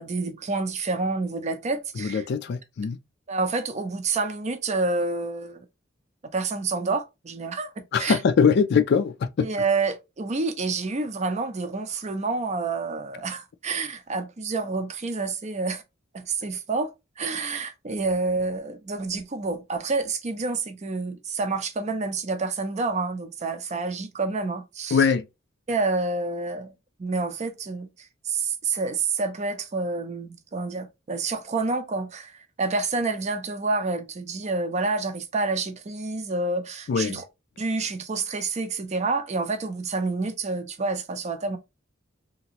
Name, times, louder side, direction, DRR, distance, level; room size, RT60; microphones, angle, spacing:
voice 1, 0.0-2.2 3.3-5.7 6.3-8.2 9.4-15.8 16.1-16.9 17.2-25.0 25.7-26.7 27.0-27.9 28.2-32.3 32.6-37.2 37.6-41.6, right 3 dB, 35° right, 0.5 m, -28 dB
voice 2, 2.0-3.0 7.9-9.5 24.9-25.3 36.9-37.2, left 6 dB, 60° left, 0.3 m, -22 dB
2.8 x 2.5 x 2.8 m
head